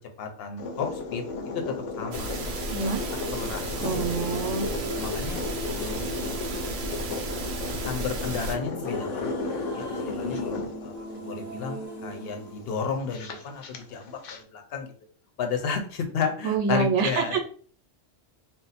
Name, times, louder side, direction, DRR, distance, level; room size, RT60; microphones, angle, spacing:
voice 1, 0.2-1.2 1.5-1.6 2.0-2.3 3.3-4.5 4.9-5.4 5.7-6.2 7.7-9.3 9.7-14.9 15.4-17.4, left 6 dB, 60° left, 4 dB, 0.8 m, -33 dB
sound 1, 0.6-14.4, left 3 dB, 85° left, 0.9 m, -34 dB
sound 2, 2.1-8.6, right 3 dB, 60° right, 0.6 m, -34 dB
voice 2, 2.7-3.0 3.8-4.6 16.4-17.4, right 4 dB, 85° right, 5 dB, 0.9 m, -26 dB
sound 3, 3.6-13.6, equal, 25° left, 0.7 m, -40 dB
2.6 x 2.0 x 4.0 m, 0.44 s
omnidirectional pair, 1.2 m